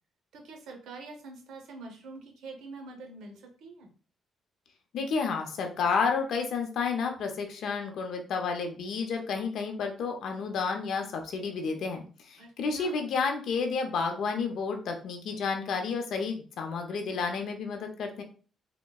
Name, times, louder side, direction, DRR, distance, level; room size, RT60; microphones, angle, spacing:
voice 1, 0.3-3.9 12.4-13.0, right 3 dB, 80° right, 2 dB, 0.8 m, -45 dB
voice 2, 4.9-18.2, left 5 dB, 70° left, 4 dB, 0.6 m, -31 dB
3.6 x 2.1 x 2.3 m, 0.39 s
cardioid pair, 90°, 0 cm